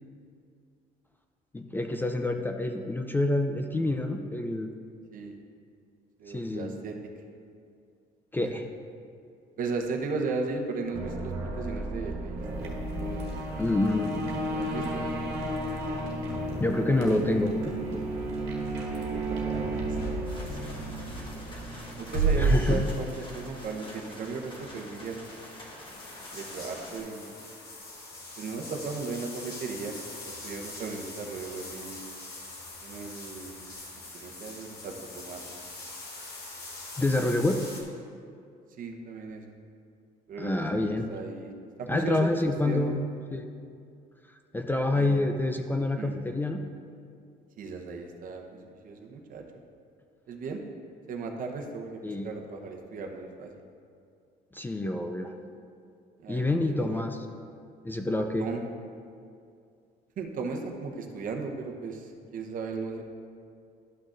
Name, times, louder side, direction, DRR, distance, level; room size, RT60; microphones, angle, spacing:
voice 1, 1.5-4.7 6.3-6.8 8.3-8.7 13.6-14.2 15.8-15.9 16.5-17.5 17.9-18.0 22.3-22.9 37.0-37.6 40.4-41.1 41.9-43.0 43.3-43.5 44.5-46.6 52.0-52.3 54.5-55.3 56.3-57.3 57.8-58.5, left 2 dB, 10° left, 5 dB, 0.4 m, -27 dB
voice 2, 6.2-6.9 8.4-8.5 9.6-13.2 14.5-15.1 18.9-20.2 20.5-21.3 22.0-25.2 26.3-27.3 28.4-32.0 32.8-33.5 34.1-35.4 38.8-39.4 40.3-41.5 41.8-42.4 42.6-42.9 44.9-45.4 46.0-46.2 47.6-48.4 48.7-49.4 50.3-50.6 51.1-53.5 56.2-57.0 58.4-58.6 60.2-63.0, right 4 dB, 55° right, 2 dB, 0.9 m, -36 dB
sound 1, 10.9-22.2, right 1 dB, 85° right, 1.4 m, -33 dB
sound 2, 19.7-20.7 21.9-23.6 23.9-24.0 24.4-37.8, right 3 dB, 70° left, 1.4 m, -36 dB
sound 3, 20.2-27.0, left 1 dB, 30° left, 1.4 m, -46 dB
12.0 x 6.1 x 2.5 m, 2.3 s
cardioid pair, 110°, 17 cm